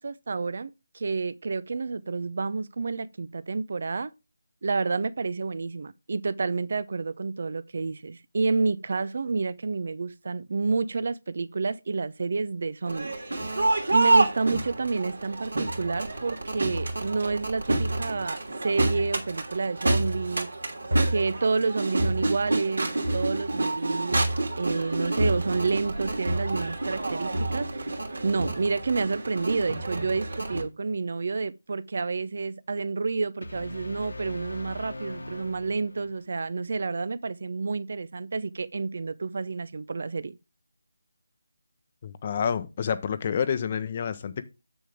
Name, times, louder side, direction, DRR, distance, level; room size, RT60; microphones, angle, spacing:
voice 1, 0.0-4.1 4.6-13.5 13.9-20.5 21.1-27.9 28.2-40.4, right 4 dB, 50° right, 0.6 m, -29 dB
Crowd, 12.9-30.6, right 2 dB, 75° right, 2.8 m, -28 dB
sound 1, 33.4-36.3, left 1 dB, 75° left, 1.7 m, -40 dB
voice 2, 42.0-44.5, left 7 dB, 30° left, 0.8 m, -28 dB
7.6 x 6.9 x 3.5 m
figure-of-eight pair, 160°, 0 cm